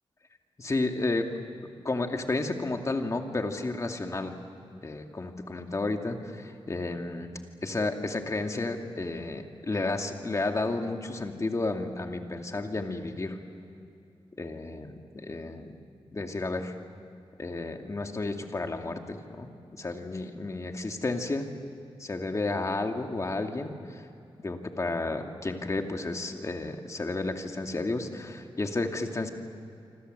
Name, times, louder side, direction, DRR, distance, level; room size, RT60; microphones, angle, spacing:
voice 1, 0.6-1.3 1.8-4.3 4.8-7.3 7.6-13.4 14.4-15.8 16.1-16.7 17.4-21.5 22.0-24.1 24.4-29.3, left 2 dB, 35° left, 4 dB, 2.3 m, -32 dB
26.5 x 26.0 x 8.0 m, 2.6 s
wide cardioid pair, 115°, 10 cm